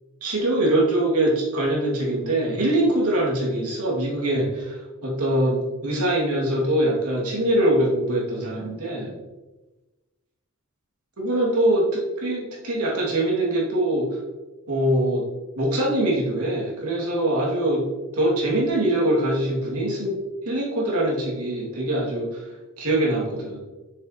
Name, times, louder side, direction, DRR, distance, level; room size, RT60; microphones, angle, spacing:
voice 1, 0.2-9.2 11.2-14.1 14.7-15.3 15.6-17.9 18.1-20.2 20.4-22.4 22.8-23.6, right 1 dB, 85° right, -4 dB, 2.3 m, -23 dB
7.0 x 6.6 x 3.0 m, 1.2 s
head